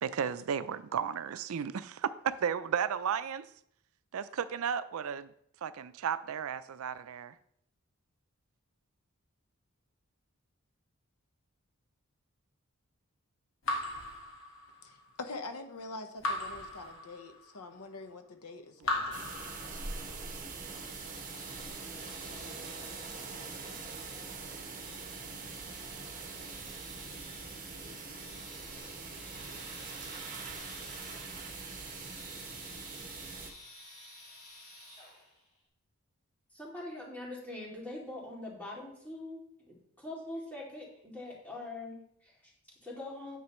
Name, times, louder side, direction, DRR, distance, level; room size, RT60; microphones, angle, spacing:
voice 1, 0.0-3.5 4.1-5.3 5.6-7.3 18.9-19.2, right 7 dB, 70° right, 14 dB, 0.4 m, -34 dB
Raindrop / Drip, 13.7-15.0 16.2-17.6 18.8-20.2, left 2 dB, 60° left, 1.6 m, -37 dB
voice 2, 14.8-19.3, left 3 dB, 90° left, 7 dB, 0.9 m, -45 dB
sound 1, 19.1-33.5, right 4 dB, 35° right, 1.0 m, -43 dB
sound 2, 20.7-35.4, left 1 dB, 30° left, 2.3 m, -52 dB
voice 3, 36.5-43.4, left 2 dB, 5° left, -5 dB, 2.4 m, -43 dB
9.5 x 7.4 x 3.0 m, 0.70 s
head